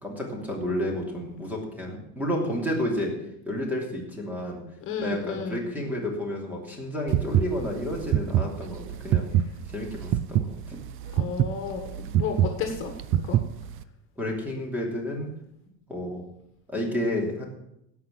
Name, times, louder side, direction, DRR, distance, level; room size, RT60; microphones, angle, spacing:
voice 1, 0.0-3.1 3.4-4.6 5.0-9.3 9.7-10.8 14.2-15.3 15.9-16.2 16.7-17.4, left 1 dB, 5° right, -1 dB, 2.9 m, -31 dB
voice 2, 4.8-5.6 11.1-12.9 13.2-13.4, left 6 dB, 40° left, 5 dB, 1.8 m, -32 dB
sound 1, 7.1-13.8, right 11 dB, 45° right, 0.5 m, -25 dB
17.0 x 6.0 x 7.5 m, 0.79 s
cardioid pair, 160°, 31 cm